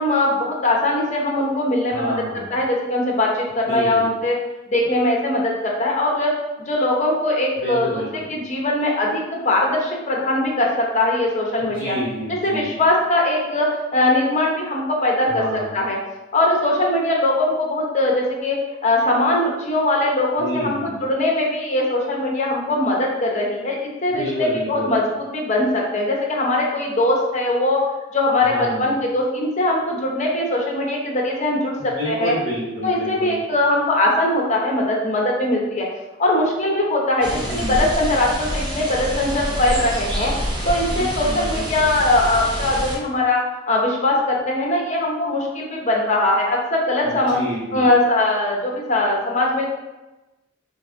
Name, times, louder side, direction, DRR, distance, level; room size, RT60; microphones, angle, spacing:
voice 1, 0.0-2.1 2.5-4.4 4.7-6.3 6.7-8.0 8.3-11.9 12.4-13.7 13.9-15.4 15.7-16.0 16.3-18.6 18.8-25.0 25.3-27.8 28.1-28.5 28.8-32.3 32.8-35.9 36.2-37.4 37.7-40.3 40.7-43.4 43.7-47.4 47.7-49.7, left 1 dB, 35° left, -1 dB, 0.7 m, -21 dB
voice 2, 1.9-2.5 3.7-4.1 7.6-8.3 11.7-12.7 15.3-15.8 20.4-20.9 24.1-24.9 28.5-28.9 31.8-33.4 37.3-37.8 40.9-41.6 47.0-47.9, equal, 75° right, -11 dB, 1.1 m, -29 dB
sound 1, 37.2-43.0, equal, 20° right, 0.5 m, -27 dB
4.6 x 2.6 x 2.5 m, 1.0 s
head